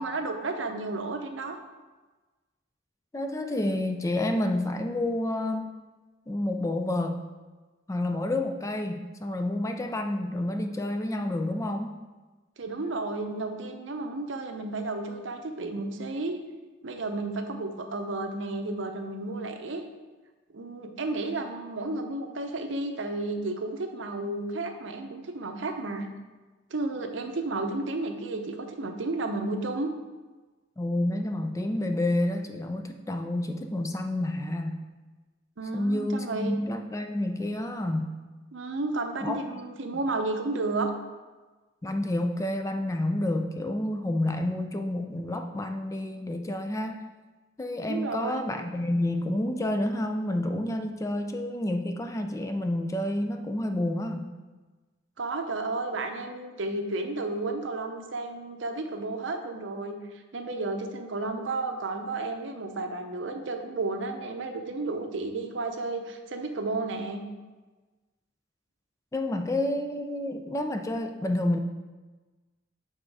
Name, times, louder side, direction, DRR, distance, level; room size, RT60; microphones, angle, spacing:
voice 1, 0.0-1.6 12.6-16.4 16.8-19.8 20.5-26.1 26.7-29.9 35.6-36.5 38.5-40.9 47.8-48.4 55.2-60.0 60.3-67.2, right 2 dB, 70° right, 5 dB, 0.7 m, -32 dB
voice 2, 3.1-5.7 6.3-7.2 7.9-12.0 30.8-34.8 35.7-38.1 39.2-39.6 41.8-47.0 47.6-54.3 69.1-71.6, left 1 dB, 15° left, 6 dB, 0.3 m, -29 dB
7.5 x 3.7 x 4.7 m, 1.2 s
head